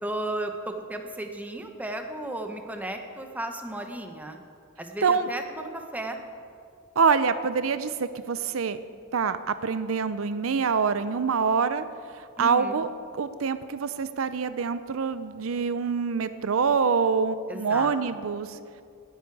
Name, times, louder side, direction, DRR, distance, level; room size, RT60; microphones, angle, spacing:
voice 1, 0.0-4.4 4.8-6.2 12.4-12.9 17.5-17.9, right 1 dB, 10° right, 4 dB, 1.0 m, -34 dB
voice 2, 7.0-8.8 9.1-11.9 12.1-18.6, right 5 dB, 75° right, 13 dB, 0.5 m, -25 dB
18.0 x 9.8 x 4.8 m, 2.3 s
head